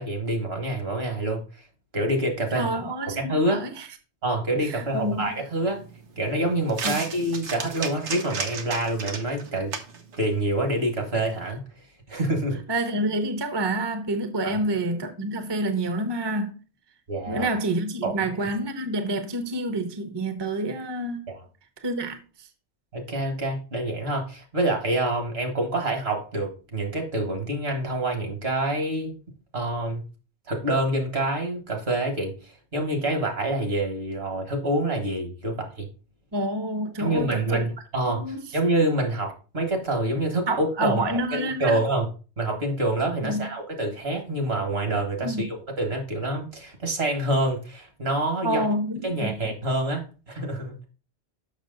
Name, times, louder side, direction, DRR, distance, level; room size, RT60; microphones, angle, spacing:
voice 1, 0.0-1.4 1.9-2.7 3.2-3.6 4.2-5.8 6.2-9.7 10.2-11.6 12.1-12.6 14.4-14.6 17.1-17.5 18.0-18.1 21.3-21.4 22.9-29.2 29.5-30.0 30.5-35.9 37.0-41.0 41.3-42.1 42.4-48.6 49.0-50.9, right 1 dB, 65° right, 2.2 m, -27 dB
voice 2, 2.5-3.9 4.6-5.3 6.8-7.0 12.7-16.5 17.3-21.2 21.8-22.5 36.3-37.7 38.0-38.4 40.5-41.8 43.2-43.5 45.2-45.4 48.4-49.3, right 1 dB, 25° right, 0.8 m, -28 dB
sound 1, 4.6-11.5, right 5 dB, 80° right, 1.3 m, -37 dB
6.6 x 6.1 x 3.8 m
omnidirectional pair, 1.1 m